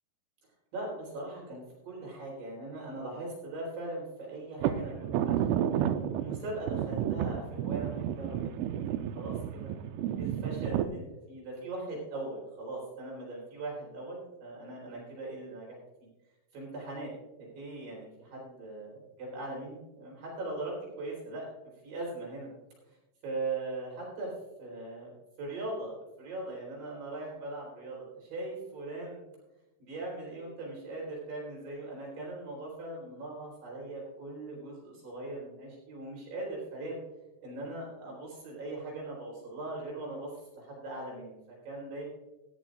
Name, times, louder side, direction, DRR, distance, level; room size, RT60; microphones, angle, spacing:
voice 1, 0.7-5.7 6.2-15.8 16.5-17.1 17.4-21.5 21.8-22.5 22.9-23.0 23.2-24.3 24.6-25.1 25.4-25.9 26.2-29.2 29.8-37.0 37.4-42.1, right 2 dB, 60° right, -3 dB, 5.7 m, -40 dB
sound 1, 4.6-10.9, right 10 dB, 85° right, 3.1 m, -31 dB
16.0 x 13.0 x 2.5 m, 1.0 s
omnidirectional pair, 5.6 m